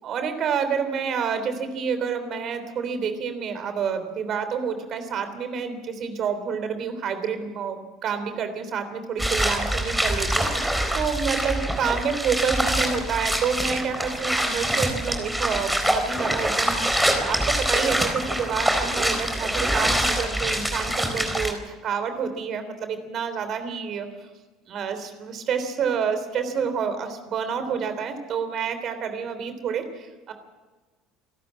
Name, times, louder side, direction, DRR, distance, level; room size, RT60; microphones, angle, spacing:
voice 1, 0.0-24.1 24.7-30.3, right 6 dB, 45° right, 9 dB, 3.4 m, -28 dB
sound 1, 9.2-21.5, right 1 dB, 5° right, 4.1 m, -25 dB
28.0 x 13.0 x 7.5 m, 1.3 s
figure-of-eight pair, 60°, 0 cm